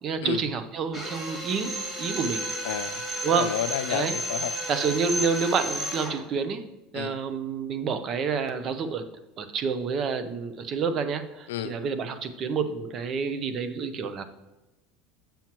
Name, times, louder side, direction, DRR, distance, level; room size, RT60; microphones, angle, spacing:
voice 1, 0.0-2.5 3.2-3.5 3.9-4.1 4.7-6.6 6.9-9.1 9.4-14.2, right 5 dB, 40° right, 10 dB, 0.7 m, -28 dB
Drill, 0.9-6.2, right 1 dB, 20° right, 2.1 m, -32 dB
voice 2, 2.6-4.5 6.9-7.2 11.5-11.8, left 12 dB, 90° left, 12 dB, 0.3 m, -31 dB
7.4 x 7.0 x 3.0 m, 1.0 s
supercardioid pair, 115°, 0 cm